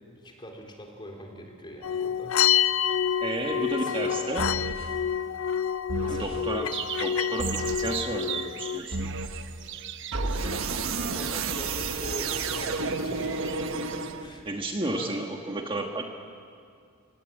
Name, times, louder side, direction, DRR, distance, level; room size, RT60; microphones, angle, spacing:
voice 1, 0.2-2.8 3.4-4.4 6.0-6.3 10.2-13.9 14.2-14.5 14.9-15.2, equal, 25° left, 1 dB, 3.7 m, -42 dB
sound 1, 1.8-8.8, left 9 dB, 75° left, 0.6 m, -28 dB
voice 2, 3.2-4.4 6.1-6.7 7.0-9.1 14.4-16.1, right 1 dB, 25° right, 2 dB, 1.4 m, -32 dB
sound 2, 4.4-4.9 5.9-6.4 7.4-8.0 8.9-9.5 10.1-14.5, right 3 dB, 80° right, 1.3 m, -31 dB
sound 3, 6.7-14.1, right 10 dB, 60° right, 0.9 m, -39 dB
25.0 x 19.0 x 8.8 m, 2.3 s
head